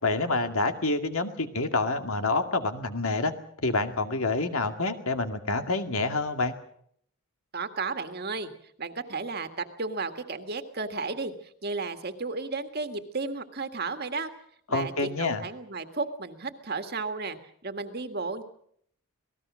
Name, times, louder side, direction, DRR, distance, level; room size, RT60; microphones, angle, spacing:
voice 1, 0.0-3.3 3.6-6.5 14.7-15.4, left 3 dB, 70° left, 6 dB, 2.2 m, -27 dB
voice 2, 7.5-8.5 8.8-14.3 14.7-17.4 17.6-18.4, right 3 dB, 45° right, 7 dB, 1.9 m, -33 dB
27.5 x 19.0 x 6.3 m, 0.67 s
head